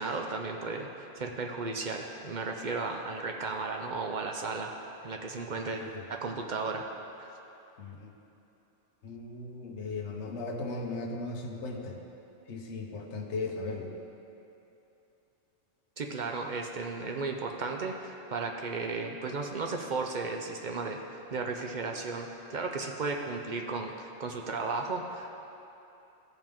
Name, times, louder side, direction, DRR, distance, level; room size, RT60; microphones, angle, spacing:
voice 1, 0.0-4.7 5.0-6.9 7.2-7.3 16.0-25.3, right 3 dB, 50° right, 2 dB, 0.6 m, -35 dB
voice 2, 5.6-6.1 7.8-8.1 9.0-12.0 12.5-13.9, left 3 dB, 65° left, 1 dB, 1.2 m, -37 dB
14.5 x 5.3 x 3.6 m, 2.9 s
omnidirectional pair, 1.3 m